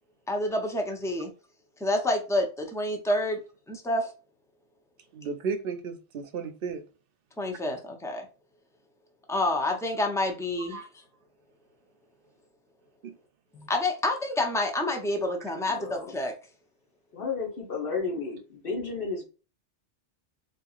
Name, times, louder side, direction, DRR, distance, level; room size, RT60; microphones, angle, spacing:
voice 1, 0.3-1.3 1.8-3.4 3.7-4.1 7.4-8.3 9.3-10.8 13.5-16.3, left 1 dB, 5° left, 0.4 m, -28 dB
voice 2, 5.1-6.8 10.7-10.9 13.0-13.1, right 5 dB, 60° right, 0.7 m, -34 dB
voice 3, 15.6-16.1 17.1-19.2, left 4 dB, 50° left, 1.3 m, -33 dB
3.9 x 2.7 x 2.4 m
omnidirectional pair, 1.2 m